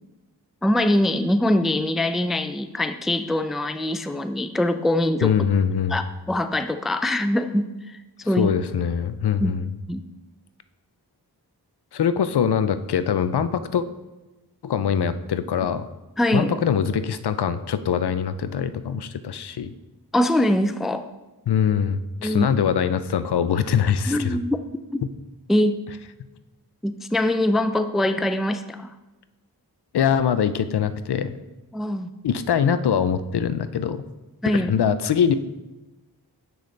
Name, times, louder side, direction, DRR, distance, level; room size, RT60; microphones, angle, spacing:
voice 1, 0.6-5.4 5.9-8.0 8.3-8.5 9.4-9.5 9.9-10.1 16.2-16.6 20.1-21.1 22.2-22.5 24.1-24.6 24.9-25.0 25.5-25.8 26.8-28.9 31.7-32.1 34.4-34.7, left 1 dB, ahead, 10 dB, 0.3 m, -23 dB
voice 2, 5.2-6.0 8.4-9.6 11.9-13.8 14.6-15.9 16.3-19.7 21.5-24.4 29.9-31.4 32.2-34.0 34.5-35.3, left 7 dB, 70° left, 12 dB, 0.5 m, -23 dB
6.9 x 6.3 x 3.3 m, 1.1 s
cardioid pair, 40°, 41 cm